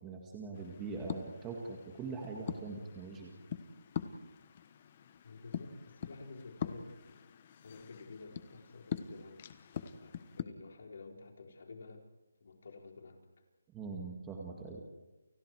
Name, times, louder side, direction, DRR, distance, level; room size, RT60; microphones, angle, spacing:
voice 1, 0.0-3.3 13.7-14.8, right 4 dB, 10° right, -1 dB, 1.9 m, -42 dB
sound 1, 0.5-10.4, left 8 dB, 25° left, 1.1 m, -44 dB
voice 2, 5.2-7.2 7.6-9.5 10.0-12.0 12.4-13.2, left 4 dB, 50° left, 2 dB, 4.3 m, -51 dB
30.0 x 29.5 x 4.8 m, 1.1 s
hypercardioid pair, 175°, 0 cm